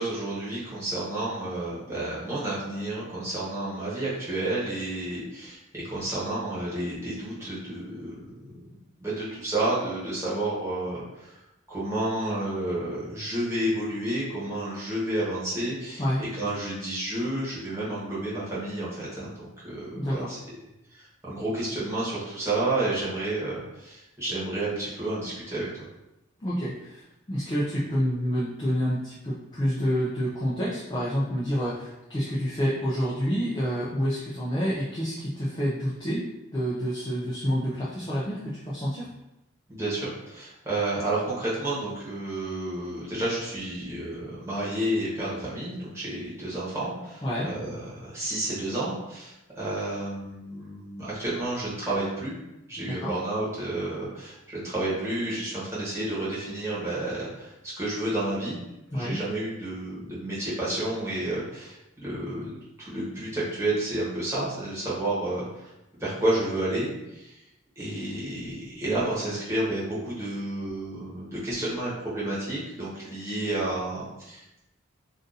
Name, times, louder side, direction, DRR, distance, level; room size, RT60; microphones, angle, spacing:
voice 1, 0.0-8.6 9.0-11.3 11.7-20.4 21.0-25.8 39.7-52.3 52.7-58.6 58.9-65.7 66.0-67.4 67.8-74.6, right 1 dB, 15° right, -8 dB, 1.1 m, -31 dB
voice 2, 19.9-20.3 26.4-27.0 27.3-36.2 36.5-39.1 47.2-47.5 52.8-53.1 58.9-59.2, equal, 20° left, -7 dB, 0.4 m, -28 dB
2.6 x 2.5 x 3.9 m, 0.92 s
head